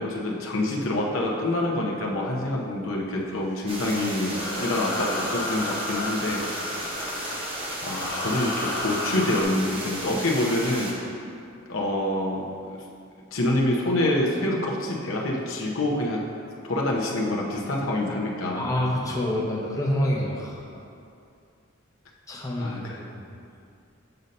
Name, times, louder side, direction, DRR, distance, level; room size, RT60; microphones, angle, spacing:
voice 1, 0.0-6.4 7.8-11.0 11.7-12.5 13.3-16.2 16.6-18.7 22.6-23.0, left 1 dB, 80° left, -2 dB, 0.8 m, -26 dB
sound 1, 3.4-9.4, left 2 dB, 55° left, 0.9 m, -33 dB
sound 2, 3.7-10.9, right 1 dB, 25° right, 1.0 m, -34 dB
voice 2, 18.5-20.6 22.3-22.8 23.1-23.2, left 1 dB, 15° left, -4 dB, 0.7 m, -27 dB
7.8 x 2.8 x 5.2 m, 2.4 s
head